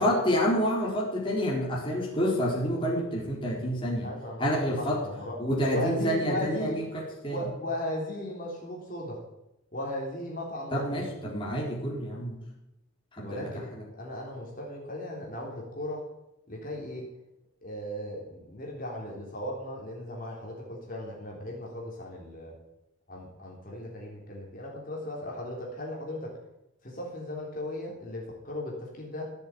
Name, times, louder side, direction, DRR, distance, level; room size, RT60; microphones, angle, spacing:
voice 1, 0.0-4.1 4.4-5.0 5.4-7.4 10.7-12.4 13.1-13.4 13.7-13.8, equal, 25° left, -3 dB, 3.9 m, -28 dB
voice 2, 4.0-5.4 5.7-6.8 7.3-9.2 9.7-11.1 13.2-16.0 16.5-17.1 17.6-22.6 23.1-26.4 26.8-29.2, left 1 dB, 40° left, -2 dB, 3.7 m, -37 dB
16.0 x 7.5 x 9.8 m, 0.90 s
head